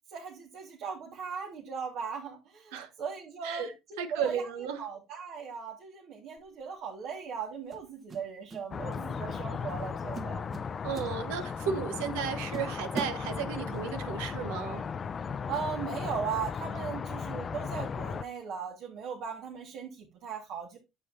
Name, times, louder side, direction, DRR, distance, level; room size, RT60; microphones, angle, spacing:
voice 1, 0.1-3.7 4.1-4.5 4.8-10.4 15.5-20.8, right 6 dB, 65° right, 1.8 m, -38 dB
voice 2, 3.4-4.8 10.8-14.9, right 7 dB, 85° right, 1.2 m, -34 dB
sound 1, 6.4-6.6 7.7-8.7 8.9-9.2 9.7-9.9 10.1-11.6 12.1-12.2 12.5-13.8, right 3 dB, 40° right, 1.3 m, -42 dB
sound 2, 8.7-18.2, left 6 dB, 40° left, 0.5 m, -36 dB
9.0 x 7.5 x 2.7 m
supercardioid pair, 80°, 0 cm